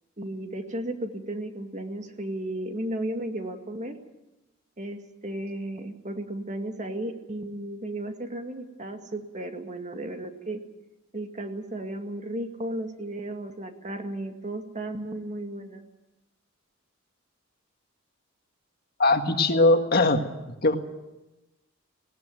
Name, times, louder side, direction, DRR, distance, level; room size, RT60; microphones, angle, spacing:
voice 1, 0.2-3.9 4.8-10.6 11.1-15.8, right 1 dB, 35° right, 5 dB, 2.1 m, -34 dB
voice 2, 19.0-20.3 20.6-20.8, left 2 dB, 50° left, 6 dB, 1.8 m, -20 dB
19.5 x 18.5 x 9.2 m, 1.0 s
head